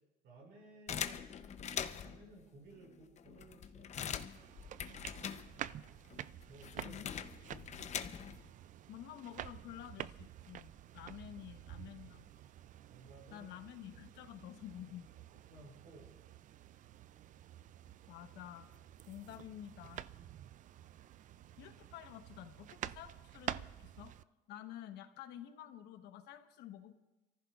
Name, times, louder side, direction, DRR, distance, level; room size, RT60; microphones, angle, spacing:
voice 1, 0.2-4.2 6.5-7.6 12.9-13.6 15.5-16.1, right 2 dB, 80° right, 0 dB, 5.2 m, -58 dB
sound 1, 0.9-2.2 2.9-3.0 3.2-5.8 6.1-8.5, left 8 dB, 40° left, 0.7 m, -42 dB
sound 2, 4.3-24.2, right 11 dB, 50° right, 0.4 m, -49 dB
voice 2, 6.8-7.1 8.9-12.3 13.3-15.1 18.1-18.7 19.0-20.0 21.6-24.1 24.5-26.9, left 11 dB, 85° left, 8 dB, 1.1 m, -50 dB
28.0 x 14.5 x 2.4 m, 1.1 s
cardioid pair, 110°, 17 cm